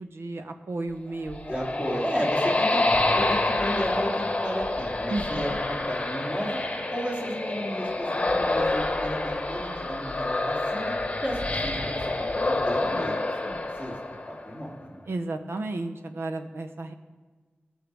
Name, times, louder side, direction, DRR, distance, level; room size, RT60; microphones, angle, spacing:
voice 1, 0.0-1.8 5.1-5.6 12.9-13.2 15.1-16.9, right 2 dB, 90° right, 7 dB, 0.7 m, -33 dB
sound 1, 1.1-14.7, left 2 dB, 30° left, 1.0 m, -28 dB
voice 2, 1.5-2.8 3.2-6.6 6.9-11.0 11.2-13.9 14.4-15.0, equal, 25° right, -4 dB, 2.8 m, -33 dB
19.5 x 6.5 x 3.5 m, 1.4 s
wide cardioid pair, 95°, 4 cm